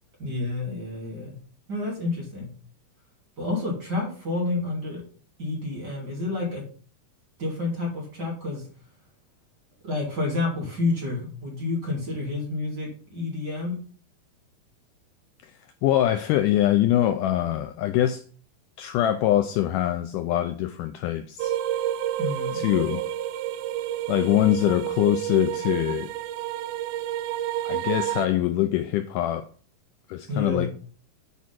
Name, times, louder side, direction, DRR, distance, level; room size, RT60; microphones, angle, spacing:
voice 1, 0.2-1.3 1.7-2.5 3.4-5.0 5.4-6.6 7.4-8.7 9.8-13.7 22.2-22.6 30.3-30.7, left 2 dB, 30° right, 2.8 m, -29 dB
voice 2, 15.4-18.2 18.8-21.6 22.5-23.1 24.1-26.1 27.6-29.5 30.1-30.7, left 13 dB, 90° left, 1.8 m, -24 dB
sound 1, 21.4-28.3, right 12 dB, 80° right, 2.5 m, -29 dB
9.9 x 4.7 x 5.9 m
omnidirectional pair, 4.3 m